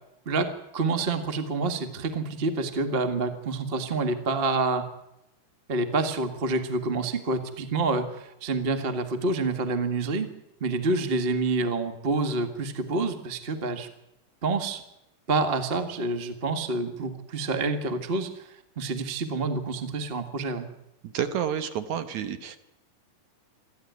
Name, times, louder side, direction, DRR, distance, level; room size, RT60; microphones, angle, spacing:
voice 1, 0.2-4.8 5.7-10.3 10.6-13.9 14.4-14.8 15.3-18.5 18.8-20.7, right 3 dB, 40° right, 7 dB, 0.8 m, -27 dB
voice 2, 21.0-22.6, right 9 dB, 65° right, 9 dB, 2.3 m, -30 dB
27.0 x 12.0 x 9.5 m, 0.87 s
omnidirectional pair, 4.0 m